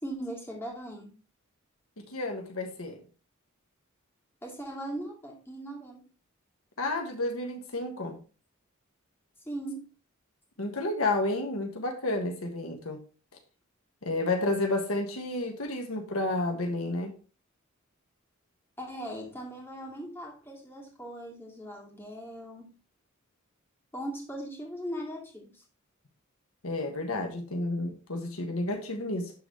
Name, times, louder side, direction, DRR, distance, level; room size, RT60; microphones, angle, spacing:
voice 1, 0.0-1.1 4.4-6.1 9.5-9.9 18.8-22.7 23.9-25.6, right 1 dB, 10° left, -2 dB, 2.3 m, -39 dB
voice 2, 2.1-3.0 6.8-8.2 10.6-13.0 14.0-17.1 26.6-29.3, left 2 dB, 80° left, 3 dB, 1.5 m, -31 dB
12.0 x 4.0 x 3.1 m, 0.35 s
head